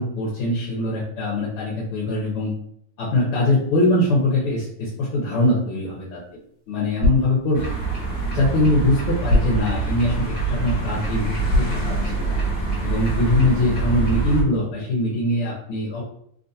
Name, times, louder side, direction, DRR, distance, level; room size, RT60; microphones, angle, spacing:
voice 1, 0.0-2.5 3.0-6.2 6.7-7.6 8.3-12.4 12.8-16.0, left 2 dB, 75° left, -4 dB, 1.8 m, -22 dB
sound 1, 5.7-12.7, left 2 dB, 60° right, 1.6 m, -29 dB
sound 2, 7.5-14.4, right 4 dB, 50° left, 1.1 m, -25 dB
3.8 x 2.5 x 2.7 m, 0.67 s
omnidirectional pair, 2.4 m